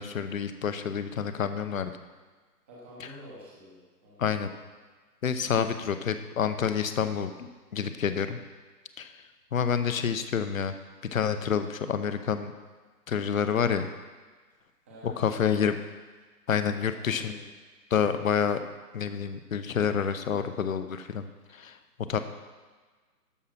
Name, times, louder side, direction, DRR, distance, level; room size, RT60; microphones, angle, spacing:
voice 1, 0.0-1.9 3.0-3.1 4.2-4.5 5.2-8.4 9.0-9.2 9.5-10.7 11.1-12.5 13.1-13.9 15.0-15.8 16.5-17.4 17.9-18.6 18.9-21.8 22.1-22.2, left 7 dB, 55° left, 10 dB, 0.9 m, -28 dB
voice 2, 2.7-4.4 14.8-15.6 16.7-17.5, left 1 dB, 10° right, -7 dB, 0.8 m, -48 dB
13.0 x 4.9 x 5.8 m, 1.4 s
hypercardioid pair, 160°, 48 cm